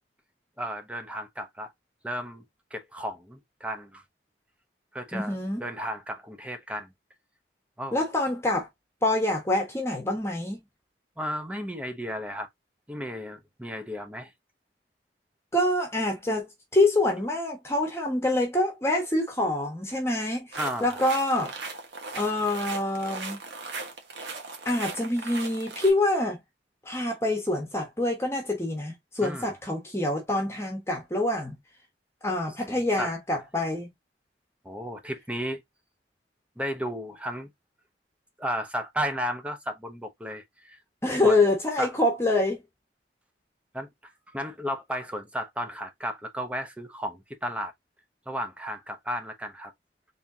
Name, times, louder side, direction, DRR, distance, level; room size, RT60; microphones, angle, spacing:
voice 1, 0.6-1.7 2.0-2.4 2.7-4.0 4.9-6.9 7.8-8.0 11.2-12.5 12.9-14.3 20.6-21.0 29.2-29.5 32.7-33.1 34.6-35.6 36.6-37.5 38.4-40.8 41.2-41.4 41.8-41.9 43.7-47.7 48.3-49.7, equal, 5° right, 0.8 m, -34 dB
voice 2, 5.1-5.6 7.9-8.7 9.0-10.6 15.5-21.5 22.1-23.4 24.6-26.4 26.8-31.5 32.2-33.9 41.0-42.6, left 2 dB, 15° left, 1.3 m, -26 dB
sound 1, 20.5-25.9, right 4 dB, 80° right, 1.3 m, -38 dB
4.4 x 3.5 x 2.7 m
head